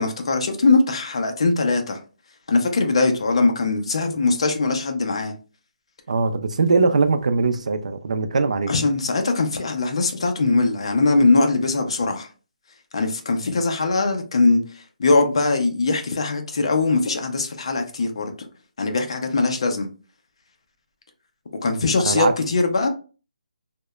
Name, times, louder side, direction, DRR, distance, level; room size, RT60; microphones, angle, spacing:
voice 1, 0.0-2.0 2.5-5.3 8.7-12.3 12.9-18.3 18.8-19.9 21.6-22.9, left 3 dB, 40° left, 0.4 m, -21 dB
voice 2, 6.1-8.7 22.1-22.3, right 4 dB, 55° right, 0.3 m, -21 dB
2.8 x 2.1 x 2.2 m
hypercardioid pair, 175°, 4 cm